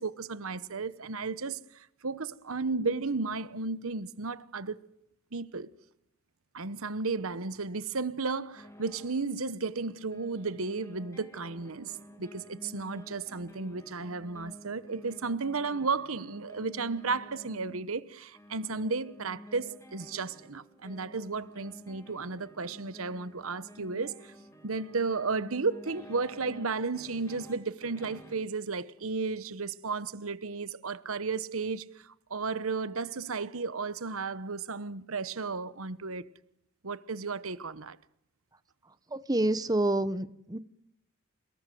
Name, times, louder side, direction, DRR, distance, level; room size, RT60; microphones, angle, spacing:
voice 1, 0.0-4.8 5.3-5.7 6.5-11.9 12.2-24.3 24.6-36.3 36.8-38.0, right 4 dB, 70° right, 1.1 m, -34 dB
sound 1, 8.5-9.2 9.7-28.5, equal, 15° left, 2.4 m, -51 dB
voice 2, 38.9-40.6, right 1 dB, 15° right, 1.0 m, -28 dB
29.0 x 19.0 x 7.7 m
head